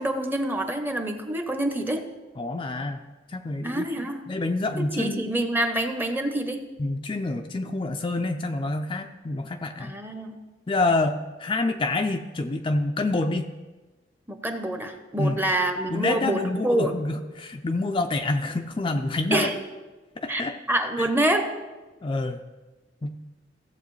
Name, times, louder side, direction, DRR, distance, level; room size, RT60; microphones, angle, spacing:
voice 1, 0.0-2.1 3.6-4.2 4.8-6.6 9.8-10.4 14.3-17.0 19.3-19.5 20.3-21.5, right 1 dB, 10° right, 6 dB, 0.8 m, -26 dB
voice 2, 2.4-3.0 3.3-3.9 4.3-5.3 6.8-9.9 10.7-13.5 15.2-15.4 15.9-19.5 20.2-20.6 21.0-21.1 22.0-22.4 23.0-23.2, left 2 dB, 30° left, 4 dB, 0.4 m, -27 dB
16.0 x 7.4 x 3.2 m, 1.2 s
head